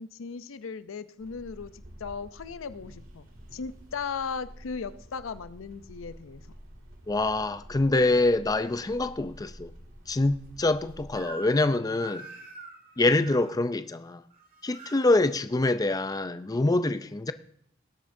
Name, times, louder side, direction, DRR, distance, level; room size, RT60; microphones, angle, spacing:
voice 1, 0.0-3.3 3.5-6.4, left 5 dB, 90° left, 0.5 m, -37 dB
sound 1, 1.2-11.2, equal, 90° right, 2.2 m, -49 dB
voice 2, 7.1-9.7 10.1-12.3 13.0-14.2 14.6-17.3, left 2 dB, 20° left, 0.4 m, -25 dB
Crying sobbing / Screech, 11.2-11.7 12.0-13.5 14.3-15.0, right 2 dB, 45° right, 2.0 m, -44 dB
19.5 x 8.5 x 2.6 m
head